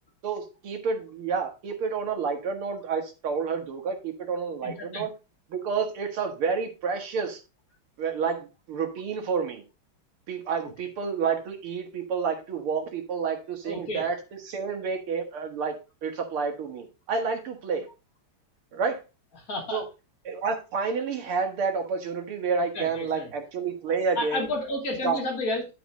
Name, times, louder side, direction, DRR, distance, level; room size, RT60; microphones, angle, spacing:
voice 1, 0.2-5.1 5.5-7.4 8.0-9.6 10.3-17.9 18.7-19.0 19.7-19.9 20.3-24.5 25.0-25.2, right 5 dB, 85° right, 4 dB, 2.5 m, -29 dB
voice 2, 4.6-5.0 13.6-14.1 19.3-19.8 22.7-23.3 24.2-25.7, left 2 dB, 40° left, 0 dB, 3.2 m, -31 dB
11.0 x 5.3 x 3.8 m, 0.29 s
omnidirectional pair, 2.3 m